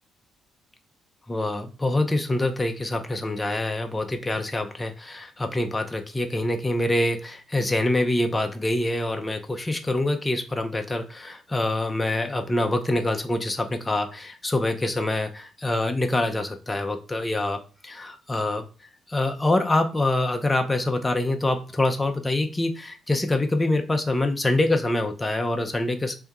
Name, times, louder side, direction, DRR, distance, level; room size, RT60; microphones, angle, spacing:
voice 1, 1.3-18.6 19.1-26.2, left 1 dB, 15° left, 5 dB, 0.5 m, -25 dB
3.4 x 2.7 x 3.5 m, 0.35 s
cardioid pair, 90°, 0 cm